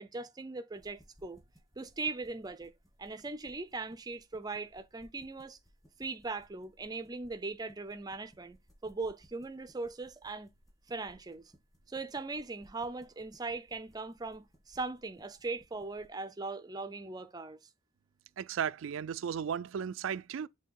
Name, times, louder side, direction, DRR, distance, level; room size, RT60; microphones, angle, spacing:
voice 1, 0.0-1.4 1.8-2.7 3.0-5.6 6.0-10.5 10.9-11.5 11.9-17.6, right 3 dB, 20° right, 0.5 m, -40 dB
sound 1, 0.7-16.1, equal, 20° left, 2.2 m, -64 dB
voice 2, 18.4-20.5, right 8 dB, 80° right, 0.4 m, -35 dB
7.8 x 2.8 x 4.6 m
head